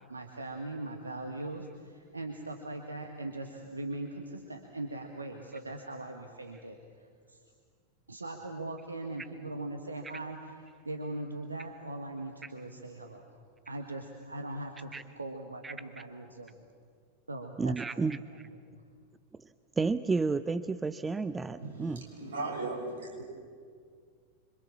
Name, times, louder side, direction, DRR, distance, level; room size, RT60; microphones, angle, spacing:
voice 1, 0.1-7.4 8.1-13.2 13.7-16.7 17.3-18.1 18.4-18.8, right 2 dB, 80° right, 4 dB, 1.8 m, -40 dB
voice 2, 17.6-18.2 19.8-22.0, right 4 dB, 15° right, 14 dB, 0.6 m, -31 dB
voice 3, 21.6-23.2, right 2 dB, 65° right, 1 dB, 6.6 m, -37 dB
26.5 x 25.0 x 7.4 m, 2.1 s
figure-of-eight pair, 90°, 0 cm